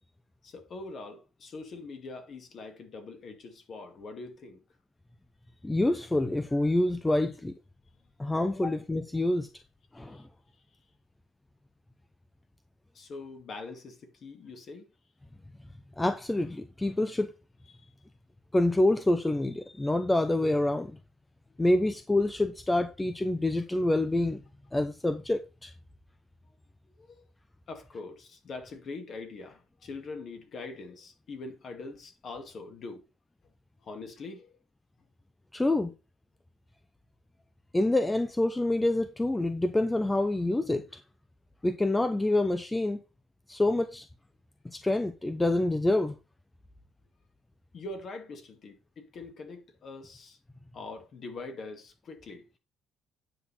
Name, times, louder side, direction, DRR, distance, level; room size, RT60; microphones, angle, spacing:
voice 1, 0.4-4.6 8.6-8.7 10.0-10.3 12.9-14.9 17.7-17.9 27.0-27.2 27.7-33.0 33.8-34.6 47.7-50.4 50.7-52.5, left 3 dB, 45° left, 2.1 m, -43 dB
voice 2, 5.6-7.5 8.2-9.5 9.9-10.3 16.0-17.3 18.5-21.0 21.6-24.4 24.7-25.7 35.5-35.9 37.7-40.8 41.6-43.0 43.5-44.1 44.7-46.1, left 1 dB, 10° left, 0.7 m, -27 dB
9.3 x 5.8 x 4.2 m
cardioid pair, 130°, 0 cm